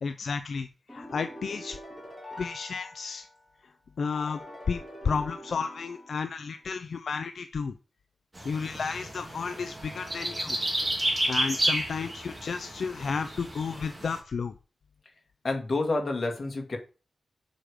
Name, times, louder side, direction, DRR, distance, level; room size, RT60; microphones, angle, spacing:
voice 1, 0.0-0.7 0.9-1.8 2.4-3.2 4.0-4.4 4.7-7.7 8.4-10.6 11.3-14.5, left 5 dB, 75° left, 8 dB, 0.5 m, -32 dB
sound 1, 0.9-3.5 4.1-6.6, left 1 dB, 10° left, 3.4 m, -45 dB
sound 2, 8.3-14.2, right 1 dB, 20° right, 2.5 m, -31 dB
voice 2, 15.4-16.8, left 2 dB, 45° left, 3 dB, 2.2 m, -28 dB
7.4 x 5.0 x 5.0 m, 0.33 s
wide cardioid pair, 105°, 0 cm